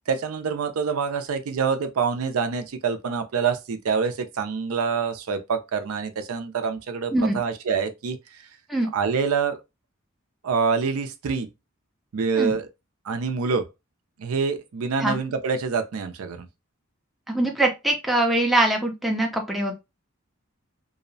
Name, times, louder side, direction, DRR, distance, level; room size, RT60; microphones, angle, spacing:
voice 1, 0.1-8.4 8.9-9.6 10.4-11.5 12.1-12.7 13.0-13.6 14.2-16.5, right 5 dB, 85° right, 0.4 m, -26 dB
voice 2, 17.3-19.7, right 1 dB, ahead, 0.4 m, -23 dB
2.7 x 2.0 x 2.6 m
head